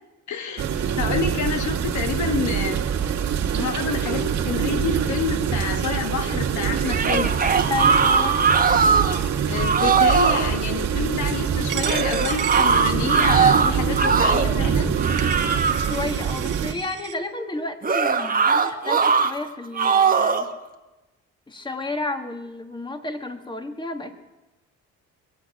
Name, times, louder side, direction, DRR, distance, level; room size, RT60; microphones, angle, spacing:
voice 1, 0.3-2.9 3.5-7.4 9.4-15.0, left 7 dB, 70° left, 6 dB, 1.4 m, -28 dB
sound 1, 0.6-16.7, right 8 dB, 65° right, 2.0 m, -25 dB
sound 2, 6.8-9.2 9.5-10.5 11.8-14.6 15.0-15.9 17.8-19.3 19.7-20.5, right 5 dB, 30° right, 1.3 m, -20 dB
voice 2, 7.7-8.4 15.8-20.5 21.5-24.2, left 2 dB, 15° left, 6 dB, 1.5 m, -31 dB
Coin (dropping), 11.7-13.5 14.1-14.2 14.9-15.0 15.2-17.2, right 13 dB, 85° right, 0.8 m, -34 dB
24.0 x 8.5 x 6.4 m, 1.1 s
cardioid pair, 90°, 30 cm